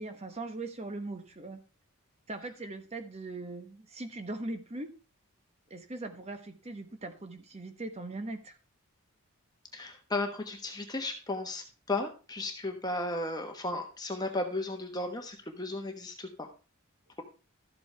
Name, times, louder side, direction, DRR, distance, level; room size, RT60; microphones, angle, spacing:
voice 1, 0.0-1.6 2.3-4.9 5.7-8.6, right 2 dB, 30° right, 8 dB, 1.1 m, -40 dB
voice 2, 9.7-16.5, left 2 dB, 20° left, 4 dB, 1.2 m, -35 dB
13.0 x 7.8 x 3.4 m, 0.34 s
head